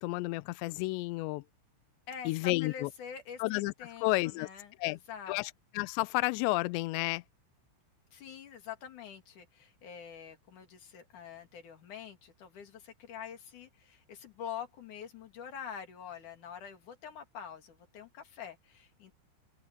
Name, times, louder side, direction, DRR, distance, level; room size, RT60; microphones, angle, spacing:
voice 1, 0.0-1.4 2.3-2.9 3.4-3.7 4.0-4.5 4.8-5.0 5.3-7.2, left 22 dB, 90° left, 2.5 m, -31 dB
voice 2, 2.1-5.4 8.1-19.2, left 8 dB, 45° left, 3.2 m, -46 dB
omnidirectional pair, 6.0 m